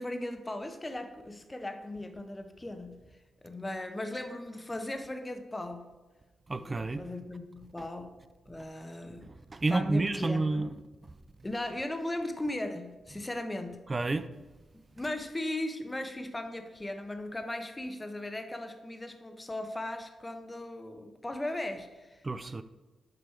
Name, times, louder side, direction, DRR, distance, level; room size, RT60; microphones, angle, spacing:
voice 1, 0.0-3.0 3.4-5.9 6.6-8.1 8.5-9.3 9.7-10.6 11.4-13.9 14.7-22.2, left 1 dB, 25° left, 1.0 m, -37 dB
voice 2, 6.5-7.0 9.3-10.7 13.9-14.3 22.2-22.6, right 2 dB, 35° right, 0.4 m, -30 dB
7.6 x 5.0 x 4.6 m
supercardioid pair, 45°, 0 cm